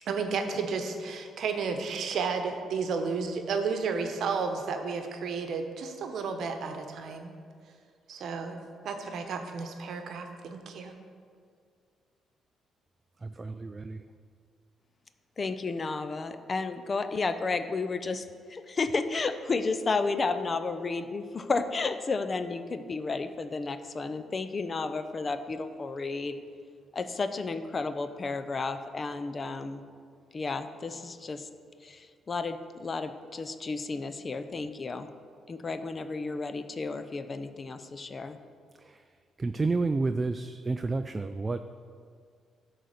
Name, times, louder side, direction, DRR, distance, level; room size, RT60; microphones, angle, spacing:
voice 1, 0.1-7.3 8.1-8.6 8.8-10.9, right 5 dB, 70° right, 6 dB, 0.9 m, -32 dB
voice 2, 13.2-14.0 38.8-39.0 39.4-41.6, right 3 dB, 25° right, 9 dB, 0.3 m, -30 dB
voice 3, 15.4-26.4 26.9-29.8 30.3-31.5 31.8-35.1 35.5-38.4, left 4 dB, 35° left, 10 dB, 0.5 m, -32 dB
11.0 x 4.0 x 6.5 m, 2.1 s
cardioid pair, 90°, 0 cm